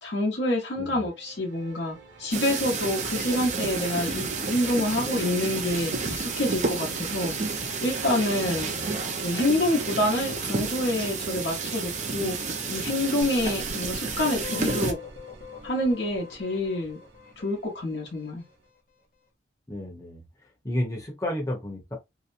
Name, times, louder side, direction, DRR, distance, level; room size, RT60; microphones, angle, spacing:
voice 1, 0.0-8.7 9.2-12.4 12.7-15.0 15.6-17.0 17.4-18.4, left 1 dB, 75° left, 0.9 m, -27 dB
sound 1, 0.9-18.7, right 3 dB, 85° right, 0.7 m, -46 dB
sound 2, 2.3-14.9, right 4 dB, 40° right, 0.5 m, -31 dB
voice 2, 8.4-8.9 19.7-20.2 20.6-21.9, left 1 dB, 20° left, 0.8 m, -32 dB
sound 3, 13.2-18.1, left 5 dB, 50° left, 0.6 m, -42 dB
2.8 x 2.1 x 2.5 m
head